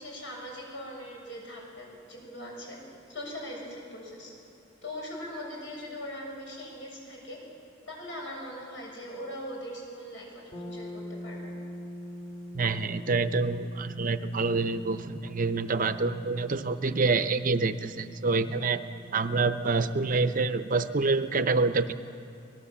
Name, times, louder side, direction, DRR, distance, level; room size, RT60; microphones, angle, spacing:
voice 1, 0.0-2.8 3.1-4.3 4.8-7.4 7.9-11.5, equal, 70° left, -1 dB, 7.0 m, -40 dB
sound 1, 10.5-20.3, left 1 dB, 25° left, 2.4 m, -44 dB
voice 2, 12.5-18.8 19.1-21.9, right 3 dB, 45° right, 11 dB, 0.7 m, -27 dB
25.5 x 19.0 x 7.3 m, 2.4 s
head